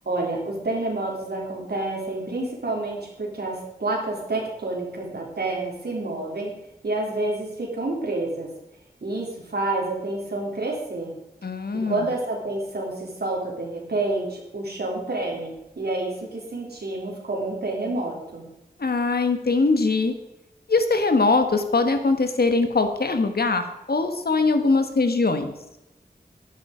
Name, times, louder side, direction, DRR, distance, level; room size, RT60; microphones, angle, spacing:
voice 1, 0.0-6.5 6.8-8.5 9.0-11.1 11.7-18.4, right 2 dB, 85° right, -2 dB, 3.3 m, -29 dB
voice 2, 11.4-12.1 18.8-20.1 20.7-25.5, left 3 dB, 75° left, 7 dB, 1.5 m, -22 dB
10.5 x 10.5 x 5.1 m, 0.92 s
cardioid pair, 40°, 16 cm